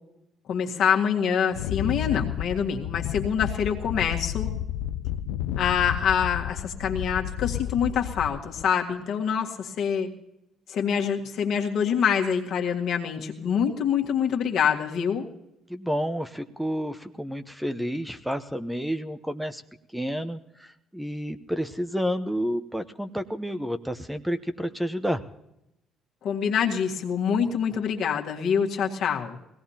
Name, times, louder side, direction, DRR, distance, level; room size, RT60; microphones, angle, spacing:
voice 1, 0.5-4.5 5.6-10.1 10.7-15.3 26.2-29.4, left 7 dB, 60° left, 1 dB, 1.9 m, -25 dB
Wind, 1.5-8.7, left 12 dB, 80° left, 0.5 m, -31 dB
voice 2, 15.7-19.6 19.9-25.2, equal, 5° right, 9 dB, 1.0 m, -30 dB
20.5 x 17.5 x 2.9 m, 0.85 s
hypercardioid pair, 55°, 0 cm